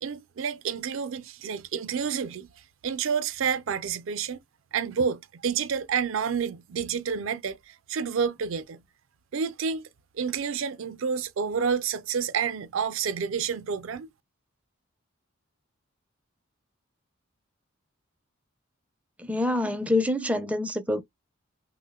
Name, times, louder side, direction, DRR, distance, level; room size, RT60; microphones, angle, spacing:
voice 1, 0.0-2.5 2.8-4.4 4.7-8.8 9.3-9.9 10.2-14.1, right 6 dB, 70° right, 0.4 m, -29 dB
voice 2, 19.2-21.0, left 2 dB, 5° right, 0.4 m, -26 dB
3.4 x 2.1 x 2.2 m
head